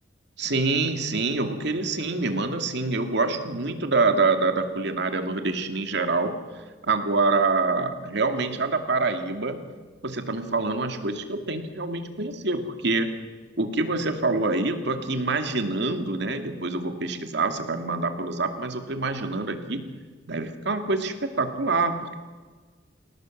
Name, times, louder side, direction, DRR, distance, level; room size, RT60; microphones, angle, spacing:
voice 1, 0.4-6.3 6.9-9.6 10.0-13.1 13.6-19.8 20.3-22.2, right 3 dB, 65° right, 6 dB, 2.6 m, -26 dB
28.5 x 18.0 x 7.4 m, 1.4 s
head